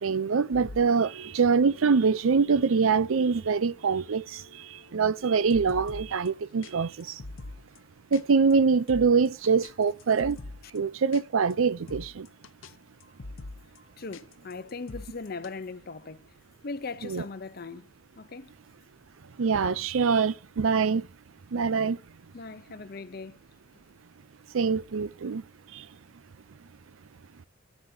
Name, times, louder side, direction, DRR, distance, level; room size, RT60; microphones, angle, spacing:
voice 1, 0.0-4.4 4.9-7.1 8.1-10.4 10.7-12.3 17.1-17.2 19.4-21.0 21.5-22.0 24.5-25.4, right 5 dB, 85° right, 0.5 m, -24 dB
sound 1, 0.5-6.3 6.6-6.7 7.0-7.8 8.1-8.2 8.5-8.6 8.9-10.8 11.1-11.2 11.5-11.6 11.9-12.7 13.0-13.8 14.1-15.5, left 2 dB, 80° left, 0.8 m, -45 dB
voice 2, 14.0-16.4 16.6-17.9 18.2-18.5 22.3-23.4, left 4 dB, 50° left, 0.7 m, -39 dB
14.0 x 9.2 x 2.8 m
head